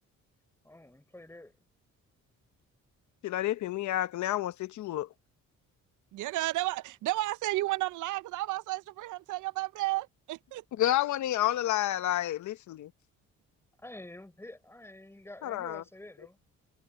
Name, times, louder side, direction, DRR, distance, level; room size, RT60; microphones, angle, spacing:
voice 1, 0.6-1.5 13.8-16.4, left 1 dB, 10° left, 5.0 m, -48 dB
voice 2, 3.2-5.1 10.8-12.9 15.4-15.8, left 13 dB, 70° left, 0.9 m, -30 dB
voice 3, 6.1-10.6, right 17 dB, 80° right, 0.6 m, -32 dB
cardioid pair, 90°, 30 cm